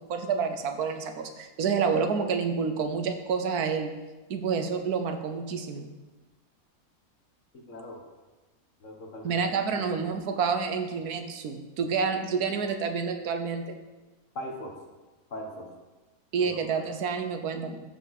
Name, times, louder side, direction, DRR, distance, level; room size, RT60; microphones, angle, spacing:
voice 1, 0.0-3.9 4.3-5.9 9.2-13.7 16.3-17.8, right 5 dB, 90° right, 6 dB, 1.4 m, -28 dB
voice 2, 7.5-8.0 8.8-9.3 9.7-9.8 14.3-14.7 15.3-15.7 16.4-16.8, left 1 dB, 55° left, 1 dB, 1.7 m, -40 dB
14.0 x 4.8 x 4.1 m, 1.2 s
omnidirectional pair, 1.6 m